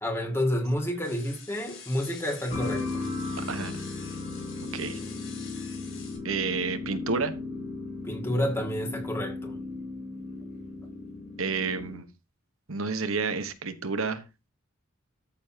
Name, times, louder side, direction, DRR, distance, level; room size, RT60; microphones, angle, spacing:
voice 1, 0.0-3.1 8.0-9.6, left 1 dB, 10° left, 2.2 m, -29 dB
sound 1, 1.0-6.2, left 7 dB, 75° left, 6.1 m, -47 dB
sound 2, 2.5-12.0, left 3 dB, 35° left, 5.6 m, -36 dB
voice 2, 3.5-3.8 4.7-5.0 6.2-7.3 11.4-12.1 12.7-14.2, right 4 dB, 85° right, 1.3 m, -30 dB
13.5 x 7.1 x 2.9 m
head